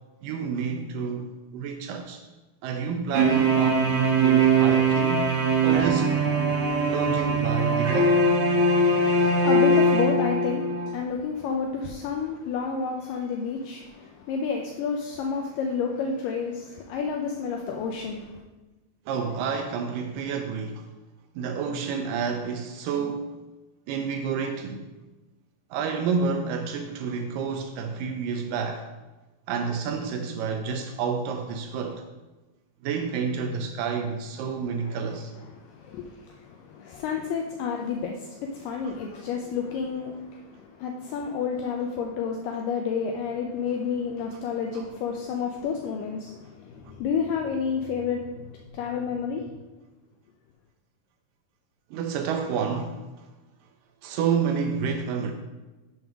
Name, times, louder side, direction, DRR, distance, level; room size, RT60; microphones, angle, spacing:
voice 1, 0.2-2.2 2.6-6.2 6.8-8.2 19.1-20.9 21.4-23.3 23.9-24.9 25.7-28.9 29.5-32.0 32.8-35.3 44.7-44.9 51.9-53.3 54.0-55.3, right 6 dB, 80° right, 2.0 m, -29 dB
sound 1, 3.1-10.9, right 2 dB, 60° right, 2.2 m, -21 dB
voice 2, 9.0-18.4 34.9-35.0 35.6-49.4, left 6 dB, 80° left, 2.1 m, -30 dB
7.0 x 3.6 x 5.8 m
omnidirectional pair, 4.1 m